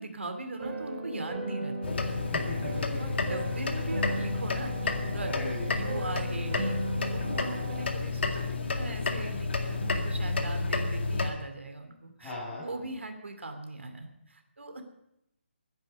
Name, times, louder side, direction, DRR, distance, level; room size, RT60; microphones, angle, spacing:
voice 1, 0.0-2.0 2.7-5.4 5.7-14.8, right 2 dB, 85° right, 6 dB, 2.8 m, -40 dB
sound 1, 0.6-7.9, right 2 dB, 40° right, 4.9 m, -37 dB
sound 2, 1.8-11.3, left 4 dB, 65° left, 2.1 m, -31 dB
voice 2, 2.2-3.3 5.3-5.7 12.2-12.6, left 2 dB, 10° left, -10 dB, 7.4 m, -39 dB
20.0 x 10.5 x 5.5 m, 0.82 s
hypercardioid pair, 160°, 6 cm